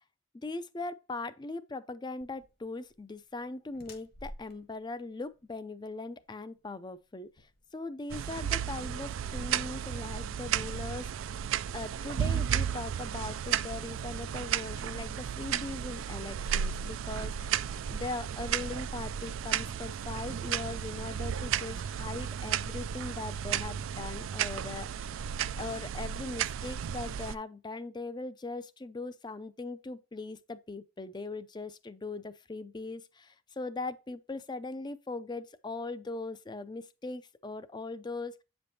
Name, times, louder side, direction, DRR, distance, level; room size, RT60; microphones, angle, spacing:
voice 1, 0.4-11.3 11.7-25.2 25.6-38.4, left 3 dB, 20° left, 0.4 m, -40 dB
sound 1, 2.2-8.3, left 1 dB, 50° left, 1.4 m, -54 dB
sound 2, 8.1-27.3, right 9 dB, 75° right, 0.3 m, -34 dB
8.4 x 5.2 x 2.7 m
head